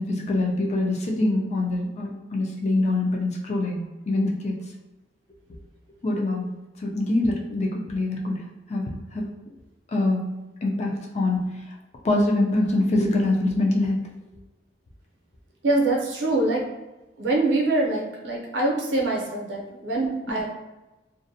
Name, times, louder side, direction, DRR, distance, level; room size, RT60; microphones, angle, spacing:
voice 1, 0.0-4.6 6.0-6.5 6.8-9.2 9.9-10.3 10.6-11.6 12.0-14.0, left 2 dB, 35° left, -1 dB, 0.4 m, -24 dB
voice 2, 15.6-16.6 17.2-20.5, right 2 dB, 80° right, -2 dB, 0.6 m, -24 dB
2.5 x 2.0 x 2.6 m, 1.1 s
head